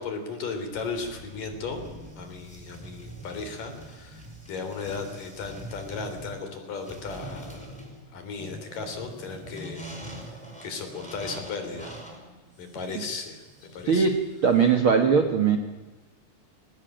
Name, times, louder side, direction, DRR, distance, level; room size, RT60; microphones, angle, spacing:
voice 1, 0.0-1.8 2.2-7.8 8.1-10.4 10.6-11.9 12.2-13.4 13.7-14.1, left 4 dB, 50° left, 6 dB, 4.9 m, -36 dB
sound 1, 0.7-14.7, right 1 dB, ahead, 6.8 m, -44 dB
voice 2, 13.8-15.6, right 6 dB, 80° right, 6 dB, 1.1 m, -20 dB
22.5 x 19.0 x 9.0 m, 1.2 s
omnidirectional pair, 5.0 m